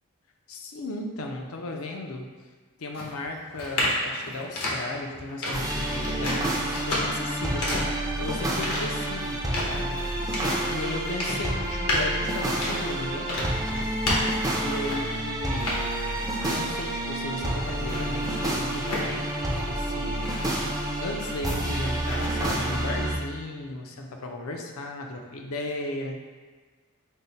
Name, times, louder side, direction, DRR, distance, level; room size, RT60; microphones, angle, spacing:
voice 1, 0.5-2.3 2.8-10.3 10.7-13.3 13.7-13.9 14.6-15.7 16.5-19.3 19.6-20.2 21.0-26.2, left 2 dB, 65° left, 2 dB, 0.5 m, -35 dB
sound 1, 2.9-15.2 15.6-16.8 17.2-19.8 20.1-21.6 22.0-22.3, left 1 dB, 85° left, 1.0 m, -32 dB
sound 2, 5.5-23.2, right 1 dB, 15° right, 0.5 m, -29 dB
5.3 x 2.1 x 4.0 m, 1.5 s
head